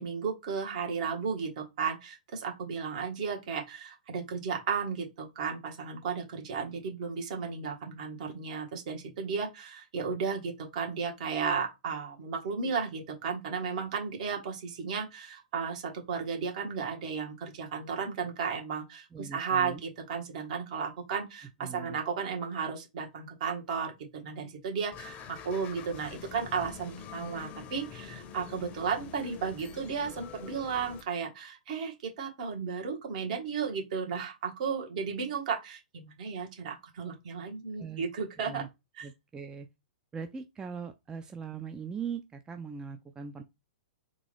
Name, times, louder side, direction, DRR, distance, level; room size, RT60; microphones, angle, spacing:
voice 1, 0.0-38.6 39.0-39.1, right 6 dB, 55° right, 1.7 m, -34 dB
voice 2, 19.1-19.8 21.6-22.0 37.8-38.0 38.4-38.7 39.0-39.7 40.1-43.4, right 6 dB, 15° right, 0.4 m, -40 dB
sound 1, 24.9-31.0, left 8 dB, 30° left, 0.6 m, -46 dB
3.7 x 2.6 x 3.4 m
hypercardioid pair, 115°, 5 cm